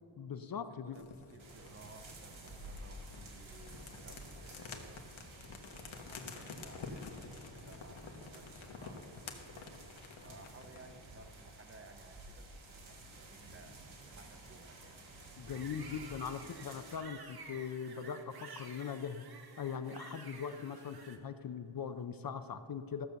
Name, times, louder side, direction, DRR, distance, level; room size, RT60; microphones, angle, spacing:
voice 1, 0.2-1.0 15.4-19.2 19.6-23.1, left 7 dB, 50° left, 10 dB, 0.5 m, -41 dB
voice 2, 0.7-5.1 6.1-9.7 10.2-13.9 14.1-15.0, right 3 dB, 30° right, 7 dB, 0.7 m, -58 dB
sound 1, 0.9-11.0, left 4 dB, 85° left, 1.3 m, -50 dB
sound 2, 1.4-17.0, right 2 dB, 80° right, 2.1 m, -53 dB
sound 3, 15.5-21.2, right 4 dB, 50° right, 1.2 m, -52 dB
14.5 x 6.6 x 6.8 m, 2.6 s
wide cardioid pair, 150°, 46 cm